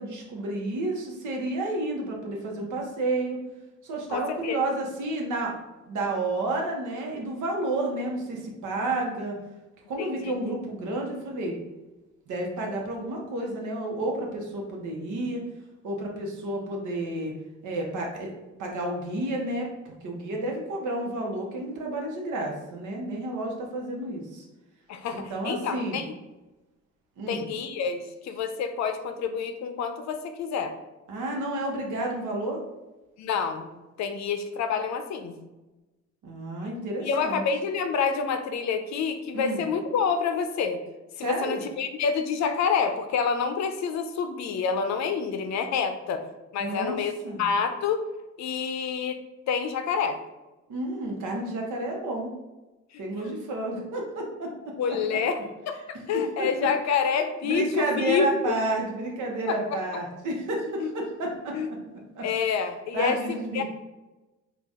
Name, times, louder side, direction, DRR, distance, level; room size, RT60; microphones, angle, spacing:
voice 1, 0.0-3.4 3.8-5.5 5.9-9.4 9.9-11.6 12.3-15.4 15.8-17.3 17.6-18.3 18.6-19.7 20.0-24.5 25.1-26.0 27.2-27.4 31.1-32.6 36.2-37.4 39.3-39.6 41.2-41.6 46.6-47.0 47.2-47.4 50.7-52.3 53.0-54.7 56.1-56.5 57.4-61.8 62.1-62.3 62.9-63.6, right 2 dB, 75° right, 0 dB, 1.0 m, -30 dB
voice 2, 4.1-4.6 10.0-10.3 24.9-26.1 27.3-30.7 33.2-33.7 34.0-35.4 37.0-40.8 41.2-46.3 46.5-47.1 47.4-48.0 48.4-49.2 49.5-50.2 52.9-53.3 54.8-55.4 55.7-55.8 56.1-58.6 59.5-60.0 60.8-60.9 61.5-61.7 62.2-63.6, left 6 dB, 65° left, 8 dB, 0.5 m, -28 dB
3.9 x 2.4 x 3.6 m, 1.1 s
cardioid pair, 90°, 30 cm